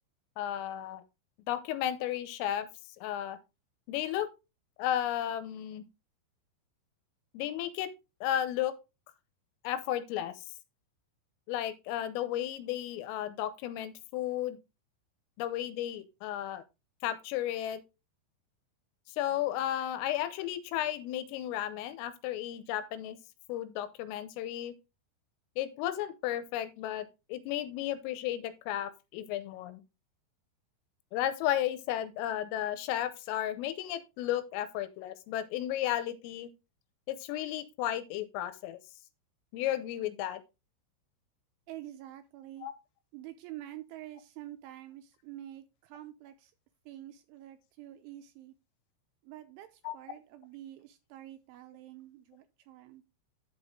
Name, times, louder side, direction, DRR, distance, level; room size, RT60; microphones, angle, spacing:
voice 1, 0.4-1.0 1.5-2.7 3.0-3.4 3.9-4.3 4.8-5.8 7.3-7.9 8.2-8.7 9.6-10.3 11.5-14.6 15.4-16.6 17.0-17.8 19.2-23.2 23.5-24.7 25.6-29.8 31.1-36.5 37.1-38.8 39.5-40.4 42.6-42.7 49.8-49.9, left 12 dB, 85° left, 3.3 m, -33 dB
voice 2, 41.7-42.7 43.1-46.5 46.9-48.5 49.2-53.0, right 13 dB, 85° right, 2.8 m, -47 dB
10.5 x 6.3 x 3.6 m
omnidirectional pair, 6.0 m